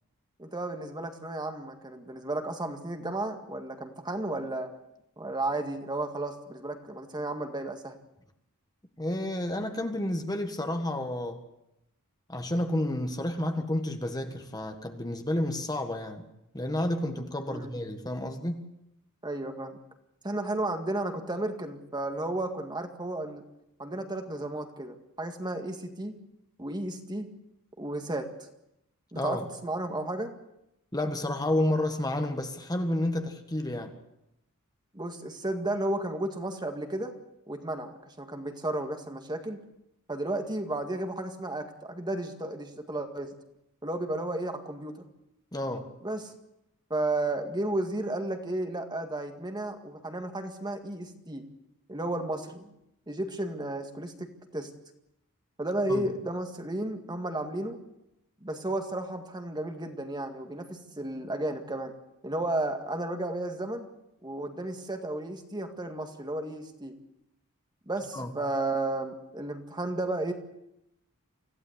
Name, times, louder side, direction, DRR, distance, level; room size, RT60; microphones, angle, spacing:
voice 1, 0.4-4.7 5.2-7.9 17.5-17.7 19.2-19.8 20.2-23.4 23.8-26.1 26.6-27.3 27.8-28.5 29.1-30.3 34.9-37.1 37.5-39.6 40.1-43.3 43.8-45.0 46.0-46.3 46.9-51.4 51.9-52.7 53.1-54.3 54.5-54.7 55.6-57.8 58.4-61.9 62.2-63.9 64.2-66.9 67.9-70.3, right 2 dB, 20° right, 5 dB, 2.0 m, -33 dB
voice 2, 9.0-11.4 12.3-16.2 16.5-18.7 29.1-29.4 30.9-33.9 45.5-45.9 55.9-56.1 68.1-68.3, left 1 dB, 20° left, 5 dB, 1.7 m, -30 dB
25.5 x 15.5 x 8.2 m, 0.85 s
head